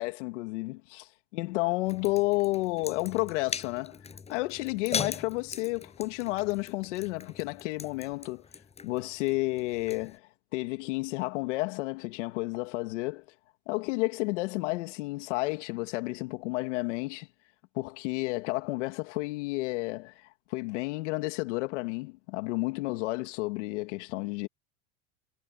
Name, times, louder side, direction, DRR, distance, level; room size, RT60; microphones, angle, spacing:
voice 1, 0.0-4.0 4.3-8.4 8.8-13.2 13.7-17.3 17.7-24.5, left 22 dB, 75° left, 2.6 m, -31 dB
sound 1, 1.9-10.2, left 5 dB, 15° left, 6.4 m, -40 dB
supercardioid pair, 135°, 37 cm